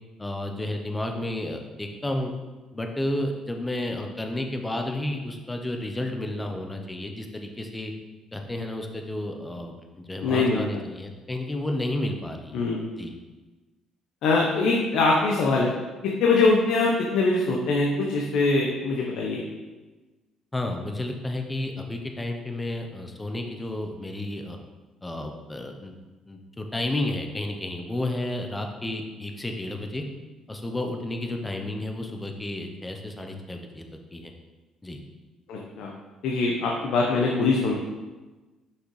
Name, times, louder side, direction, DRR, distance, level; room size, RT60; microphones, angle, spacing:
voice 1, 0.2-2.3 2.7-7.9 8.3-12.6 13.0-13.1 20.5-24.6 25.0-26.0 26.3-30.0 30.5-33.8 34.1-34.3 34.8-35.0, left 1 dB, 10° left, 3 dB, 0.8 m, -31 dB
voice 2, 10.2-10.6 12.5-12.8 14.2-15.7 16.0-19.4 35.5-35.9 36.2-37.7, left 3 dB, 70° left, -1 dB, 1.0 m, -23 dB
6.5 x 5.8 x 4.8 m, 1.2 s
cardioid pair, 155°, 0 cm